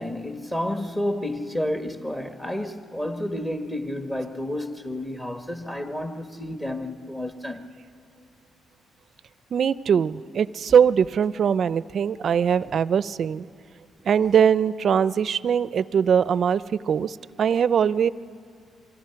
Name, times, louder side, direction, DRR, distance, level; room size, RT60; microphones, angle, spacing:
voice 1, 0.0-7.6 12.6-12.7, left 1 dB, 15° left, 1.3 m, -30 dB
voice 2, 9.5-13.4 14.1-16.6 16.9-18.1, right 7 dB, 55° right, 0.5 m, -21 dB
27.0 x 24.5 x 5.8 m
cardioid pair, 90°, 0 cm